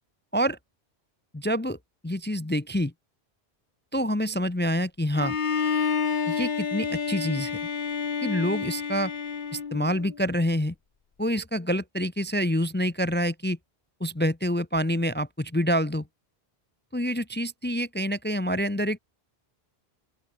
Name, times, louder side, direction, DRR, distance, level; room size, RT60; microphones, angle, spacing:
voice 1, 1.3-1.8 2.0-2.9 3.9-5.4 6.3-7.6 8.2-9.1 9.5-10.7 11.2-13.6 14.0-16.1 16.9-19.0, equal, 10° left, 0.7 m, -27 dB
Bowed string instrument, 5.1-10.2, left 6 dB, 50° left, 1.2 m, -29 dB
open air
omnidirectional pair, 1.1 m